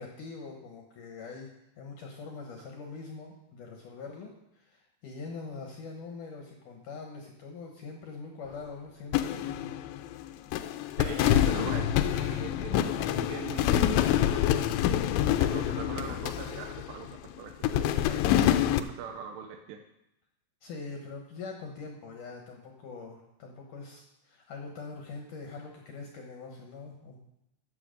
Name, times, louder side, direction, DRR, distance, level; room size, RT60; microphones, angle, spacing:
voice 1, 0.0-1.5 1.8-9.8 20.6-27.2, left 4 dB, 70° left, 1 dB, 2.0 m, -43 dB
sound 1, 9.1-10.2 10.5-17.2 17.6-18.8, left 11 dB, 85° left, 2.9 m, -26 dB
voice 2, 11.0-14.6 15.4-18.5 18.8-19.8, right 8 dB, 80° right, 4 dB, 2.8 m, -42 dB
14.5 x 6.9 x 5.1 m, 0.85 s
omnidirectional pair, 5.3 m